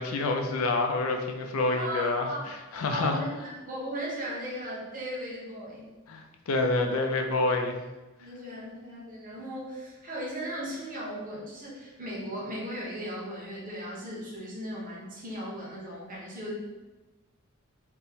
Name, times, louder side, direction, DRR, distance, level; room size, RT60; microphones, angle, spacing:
voice 1, 0.0-2.3 2.7-3.2 6.1-7.8, left 3 dB, 65° left, 4 dB, 0.5 m, -27 dB
voice 2, 1.7-2.5 2.9-5.9 8.2-16.5, equal, 40° right, -6 dB, 1.1 m, -37 dB
4.3 x 2.1 x 3.5 m, 1.2 s
head